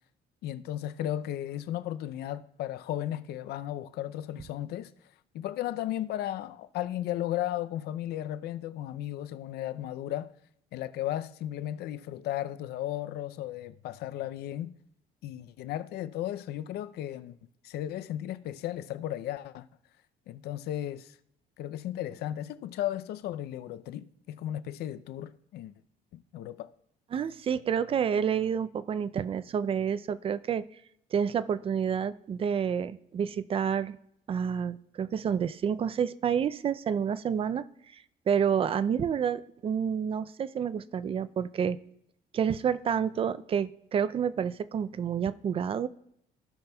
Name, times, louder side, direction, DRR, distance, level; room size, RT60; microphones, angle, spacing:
voice 1, 0.4-4.9 5.3-10.3 10.7-14.7 15.2-17.4 17.6-19.7 20.3-21.2 21.6-25.7 26.1-26.7, left 12 dB, 70° left, 0.5 m, -35 dB
voice 2, 27.1-30.6 31.1-34.0 34.3-37.7 38.3-41.8 42.3-45.9, right 7 dB, 35° right, 0.4 m, -29 dB
16.5 x 5.8 x 2.2 m
cardioid pair, 110°, 17 cm